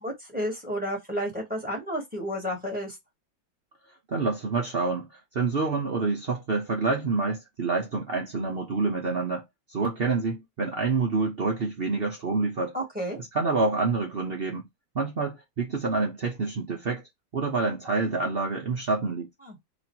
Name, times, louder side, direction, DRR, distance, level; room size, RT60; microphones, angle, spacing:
voice 1, 0.0-3.0 12.7-13.2 19.4-19.5, equal, 5° right, 1.2 m, -31 dB
voice 2, 4.1-9.4 9.7-12.7 13.3-14.7 14.9-17.0 17.3-19.3, right 4 dB, 70° right, 0.5 m, -27 dB
3.1 x 2.5 x 4.3 m
omnidirectional pair, 2.0 m